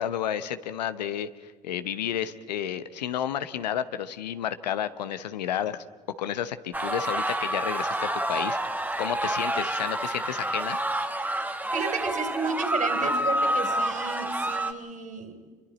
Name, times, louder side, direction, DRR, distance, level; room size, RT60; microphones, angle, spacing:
voice 1, 0.0-5.8 6.2-8.6 9.0-10.8, left 10 dB, 85° left, 12 dB, 0.9 m, -31 dB
sound 1, 6.7-14.7, right 1 dB, 10° right, 1.6 m, -28 dB
voice 2, 11.7-15.4, right 4 dB, 40° right, 7 dB, 3.7 m, -32 dB
28.5 x 23.5 x 4.2 m, 1.5 s
hypercardioid pair, 60°, 21 cm